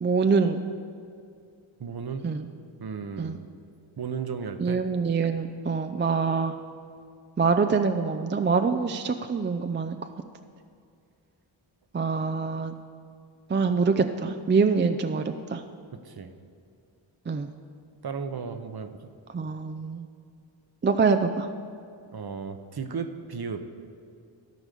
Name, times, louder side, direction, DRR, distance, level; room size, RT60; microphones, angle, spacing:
voice 1, 0.0-0.6 2.2-2.5 3.2-3.4 4.6-6.5 7.4-10.0 11.9-12.7 13.5-15.2 15.5-15.6 17.3-17.5 19.3-20.1 20.8-21.5, right 5 dB, 25° right, 8 dB, 0.5 m, -25 dB
voice 2, 1.8-2.2 2.8-3.4 4.0-4.8 16.0-16.3 18.0-19.0 22.1-23.6, right 6 dB, 50° right, 8 dB, 0.9 m, -34 dB
13.5 x 4.8 x 6.8 m, 2.4 s
cardioid pair, 55°, 48 cm